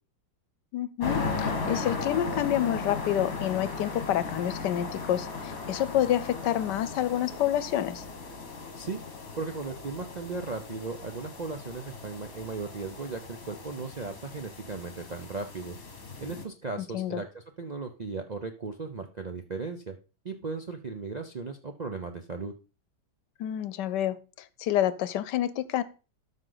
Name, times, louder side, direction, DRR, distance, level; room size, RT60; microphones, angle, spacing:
voice 1, 0.7-8.0 16.8-17.2 23.4-24.2 24.6-25.8, left 11 dB, 85° left, 16 dB, 1.3 m, -28 dB
sound 1, 1.0-16.4, left 4 dB, 55° left, 2.2 m, -37 dB
voice 2, 9.4-15.8 16.2-20.0 20.2-22.5, right 4 dB, 55° right, 5 dB, 0.4 m, -36 dB
13.0 x 5.6 x 3.9 m, 0.33 s
omnidirectional pair, 1.8 m